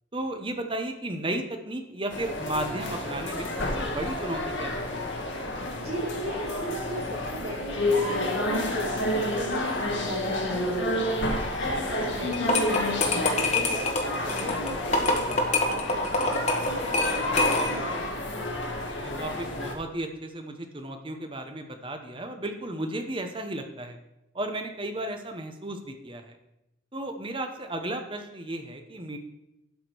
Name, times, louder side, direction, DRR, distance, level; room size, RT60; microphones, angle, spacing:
voice 1, 0.1-5.1 12.1-12.3 19.0-24.0 24.3-26.4 26.9-29.2, right 1 dB, 25° right, 5 dB, 1.0 m, -34 dB
sound 1, 2.1-19.7, left 1 dB, 70° left, 1.6 m, -30 dB
voice 2, 5.8-11.2 11.6-15.2 15.6-18.1, right 2 dB, 50° right, -3 dB, 3.7 m, -37 dB
sound 2, 12.3-17.9, left 2 dB, 35° left, 1.3 m, -26 dB
11.5 x 5.1 x 6.2 m, 0.88 s
head